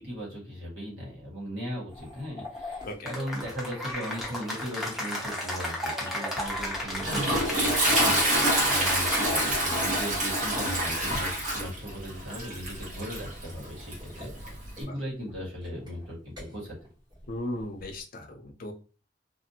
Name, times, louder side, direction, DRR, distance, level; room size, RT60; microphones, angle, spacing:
voice 1, 0.0-16.7, equal, 80° right, -5 dB, 1.5 m, -38 dB
sound 1, 1.9-10.5 12.3-18.0, equal, 20° right, 1.3 m, -44 dB
voice 2, 2.8-3.1 14.8-14.9 17.3-18.7, left 1 dB, 50° left, 3 dB, 0.5 m, -36 dB
Cheering / Applause, 3.1-9.8, left 1 dB, ahead, 0.7 m, -34 dB
Toilet flush, 6.5-14.8, right 1 dB, 40° right, 1.0 m, -27 dB
2.5 x 2.5 x 2.7 m, 0.35 s
head